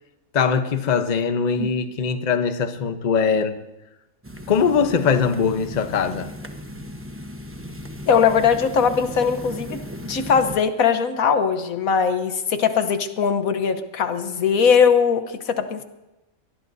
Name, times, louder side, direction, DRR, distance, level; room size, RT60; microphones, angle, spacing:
voice 1, 0.3-3.6 4.5-6.3, left 6 dB, 35° left, 0.9 m, -21 dB
sound 1, 4.2-10.6, left 1 dB, 10° right, 0.9 m, -36 dB
voice 2, 8.1-15.8, left 6 dB, 80° left, 1.4 m, -20 dB
23.5 x 19.0 x 2.7 m
omnidirectional pair, 1.5 m